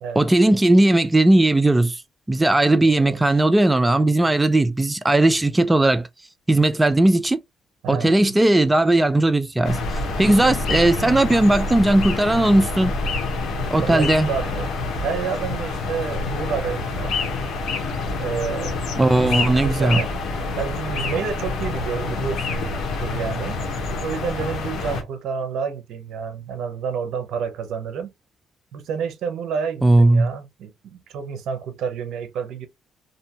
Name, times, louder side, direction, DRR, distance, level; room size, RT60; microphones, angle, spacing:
voice 1, 0.2-2.0 2.3-6.1 6.5-7.4 7.9-9.8 10.2-12.9 13.7-14.3 19.0-20.0 29.8-30.3, right 2 dB, 15° right, 0.3 m, -17 dB
voice 2, 2.8-3.2 4.2-4.3 7.8-8.1 11.0-11.2 13.8-17.2 18.2-18.8 19.1-20.2 20.6-23.6 24.0-28.1 28.7-32.7, right 6 dB, 80° right, 0.5 m, -29 dB
sound 1, 9.6-25.0, left 3 dB, 70° left, 0.8 m, -27 dB
2.5 x 2.2 x 2.7 m
cardioid pair, 90°, 0 cm